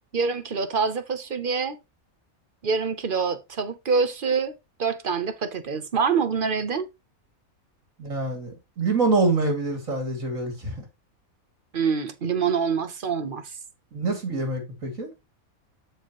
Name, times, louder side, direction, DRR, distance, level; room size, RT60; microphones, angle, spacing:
voice 1, 0.1-1.8 2.6-6.9 11.7-13.5, right 5 dB, 45° right, 0.9 m, -26 dB
voice 2, 8.0-10.8 13.9-15.1, right 3 dB, 65° right, 3.1 m, -26 dB
13.5 x 4.9 x 3.0 m
omnidirectional pair, 1.5 m